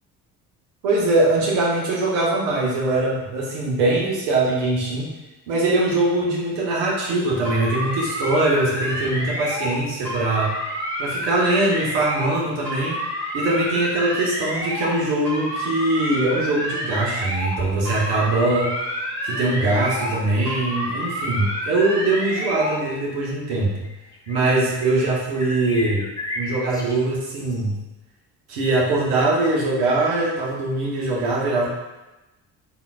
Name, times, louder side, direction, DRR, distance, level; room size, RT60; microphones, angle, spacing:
voice 1, 0.8-5.1 5.5-10.5 11.0-13.0 13.3-18.8 19.2-23.9 24.3-26.1 26.3-27.8 28.5-31.7, right 2 dB, 60° right, -3 dB, 1.0 m, -22 dB
sound 1, 7.4-9.8 10.0-12.4 12.6-15.0 15.2-17.6 17.8-20.2 20.5-22.8, equal, 80° right, 1.1 m, -29 dB
sound 2, 23.8-25.1 25.3-27.6, left 1 dB, 10° left, 0.3 m, -34 dB
3.6 x 2.6 x 2.2 m, 1.0 s
figure-of-eight pair, 45°, 47 cm